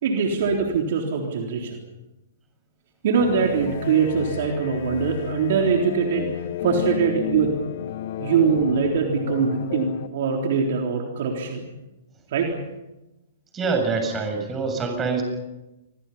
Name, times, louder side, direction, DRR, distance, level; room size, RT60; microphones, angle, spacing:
voice 1, 0.0-1.8 3.0-6.3 6.6-7.6 8.2-11.7 12.3-12.6, right 5 dB, 55° right, 2 dB, 3.7 m, -22 dB
sound 1, 3.2-10.1, left 12 dB, 50° left, 1.5 m, -33 dB
voice 2, 13.5-15.2, right 4 dB, 20° right, 4 dB, 7.5 m, -25 dB
28.5 x 23.5 x 5.7 m, 0.99 s
figure-of-eight pair, 110°, 0 cm